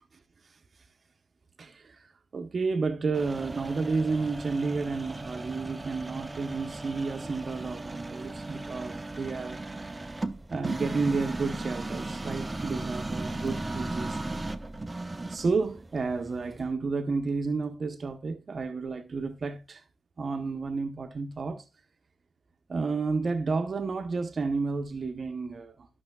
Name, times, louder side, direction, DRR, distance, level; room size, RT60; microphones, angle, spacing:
voice 1, 1.6-9.9 10.5-14.2 15.3-19.8 20.2-21.7 22.7-25.9, right 4 dB, 60° right, 0.7 m, -31 dB
sound 1, 3.1-16.7, right 2 dB, 25° right, 0.6 m, -36 dB
13.0 x 6.1 x 2.2 m
cardioid pair, 70°, 0 cm